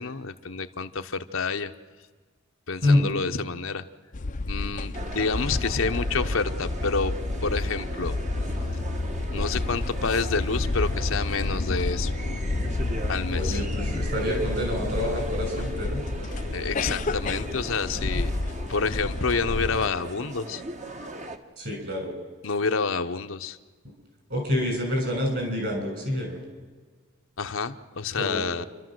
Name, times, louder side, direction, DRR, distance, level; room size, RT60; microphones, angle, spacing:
voice 1, 0.0-1.7 2.7-3.8 4.5-7.1 7.4-8.2 9.3-12.1 13.1-13.6 16.5-18.3 18.7-20.6 22.4-23.6 27.4-28.6, left 4 dB, 70° left, 7 dB, 0.9 m, -28 dB
voice 2, 2.8-3.1 13.3-16.0 21.6-22.2 24.3-26.4 28.2-28.5, left 1 dB, 55° right, 3 dB, 7.2 m, -27 dB
sound 1, 4.1-19.9, left 2 dB, 40° left, 0.6 m, -30 dB
sound 2, 4.9-21.4, right 2 dB, 35° right, 1.3 m, -39 dB
29.5 x 12.5 x 7.8 m, 1.4 s
head